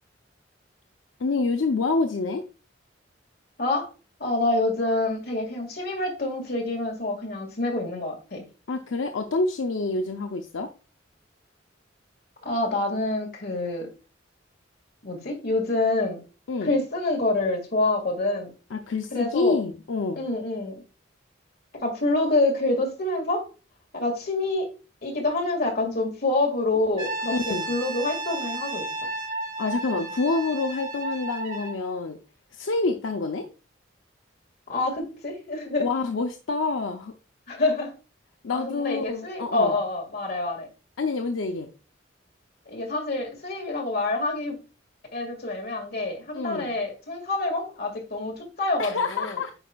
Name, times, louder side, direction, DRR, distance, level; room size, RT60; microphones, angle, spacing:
voice 1, 1.2-2.4 8.7-10.7 16.5-16.7 18.7-20.2 27.3-27.7 29.6-32.2 32.5-33.5 35.8-37.1 38.4-39.7 41.0-41.7 46.3-46.7 48.8-49.5, left 3 dB, 80° left, 5 dB, 0.5 m, -27 dB
voice 2, 4.2-8.4 12.4-13.9 15.0-16.2 16.6-18.5 19.1-19.6 20.2-20.8 21.7-23.5 23.9-24.7 25.0-28.9 34.7-35.9 37.5-37.9 38.5-40.7 42.7-44.6 45.1-49.4, left 2 dB, 55° left, 2 dB, 2.0 m, -27 dB
Brass instrument, 27.0-31.8, right 2 dB, 45° right, 2.7 m, -33 dB
8.9 x 5.0 x 2.3 m, 0.34 s
head